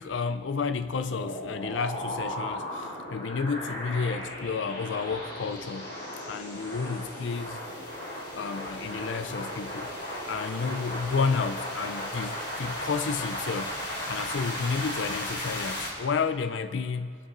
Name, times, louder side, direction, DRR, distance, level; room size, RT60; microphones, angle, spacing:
voice 1, 0.0-5.9 6.3-7.6 8.3-9.9 10.2-13.8 14.1-17.2, left 5 dB, 80° left, 12 dB, 0.5 m, -31 dB
sound 1, 1.1-15.9, left 1 dB, 55° left, 4.1 m, -36 dB
23.5 x 8.5 x 3.9 m, 2.3 s
head